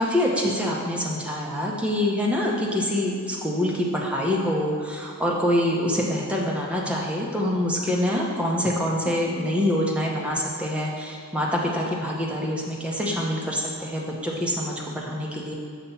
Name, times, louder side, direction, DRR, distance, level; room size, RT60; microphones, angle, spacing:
voice 1, 0.0-15.5, left 1 dB, 5° right, -3 dB, 0.6 m, -25 dB
6.7 x 2.9 x 5.5 m, 2.2 s
head